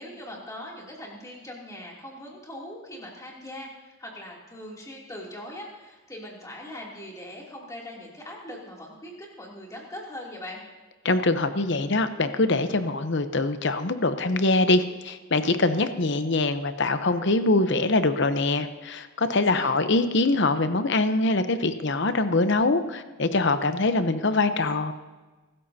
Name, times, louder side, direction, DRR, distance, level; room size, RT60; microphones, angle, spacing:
voice 1, 0.0-10.6 19.3-19.7, left 1 dB, 15° left, -3 dB, 2.9 m, -41 dB
voice 2, 11.0-24.9, left 2 dB, 55° left, 10 dB, 0.8 m, -23 dB
23.5 x 13.0 x 2.8 m, 1.3 s
head